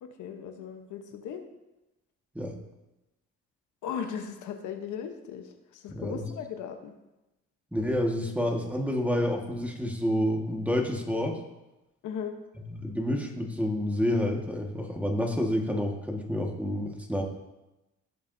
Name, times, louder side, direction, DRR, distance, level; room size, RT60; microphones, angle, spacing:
voice 1, 0.0-1.4 3.8-6.9 12.0-12.4, left 7 dB, 80° left, 5 dB, 1.1 m, -37 dB
voice 2, 5.9-6.2 7.7-11.4 12.7-17.2, left 1 dB, 5° right, 1 dB, 1.6 m, -29 dB
15.5 x 7.1 x 2.7 m, 0.98 s
cardioid pair, 90°, 30 cm